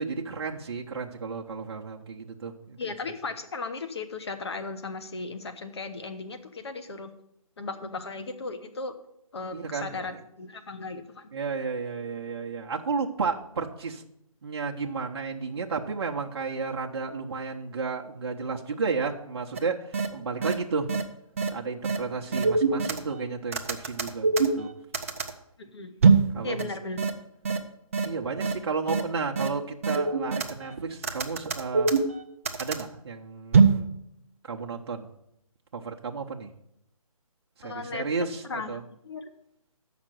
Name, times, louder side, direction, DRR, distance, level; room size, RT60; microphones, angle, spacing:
voice 1, 0.0-2.8 9.5-10.0 11.3-14.0 14.4-20.9 21.5-24.7 26.3-26.7 28.0-31.9 32.6-33.9 34.4-35.1 35.7-36.5 37.6-38.8, right 4 dB, 45° right, 0 dB, 0.9 m, -32 dB
voice 2, 2.8-7.1 7.6-8.9 9.3-11.3 25.6-25.9 26.4-27.1 37.6-39.3, left 4 dB, 45° left, 9 dB, 0.9 m, -36 dB
sound 1, 19.5-19.6 19.9-20.1 20.4-20.5 20.9-21.0 21.4-21.5 21.8-22.0 22.3-23.1 23.5-25.3 26.0-26.3 26.6-26.7 27.0-27.1 27.4-27.6 27.9-28.0 28.4-28.5 28.9-29.0 29.4-29.5 29.8-30.7 31.0-32.8 33.5-33.8, right 4 dB, 25° right, 0.5 m, -22 dB
7.6 x 5.9 x 7.5 m, 0.76 s
hypercardioid pair, 170°, 18 cm